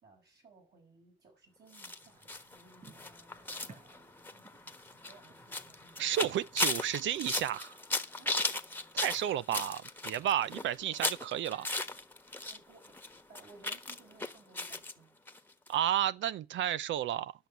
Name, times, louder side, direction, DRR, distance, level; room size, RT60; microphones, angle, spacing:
voice 1, 0.0-6.1 8.2-8.4 10.4-10.8 12.4-13.0 13.3-15.2, right 4 dB, 55° right, 6.3 m, -60 dB
sound 1, 1.7-12.6 12.8-14.9 15.3-15.4 15.7-15.8, left 2 dB, 10° left, 1.2 m, -37 dB
sound 2, 2.0-7.6, right 4 dB, 40° right, 6.6 m, -59 dB
voice 2, 6.0-7.8 8.9-11.7 15.7-17.3, right 11 dB, 75° right, 0.6 m, -32 dB
11.5 x 6.2 x 8.1 m
cardioid pair, 90°, 20 cm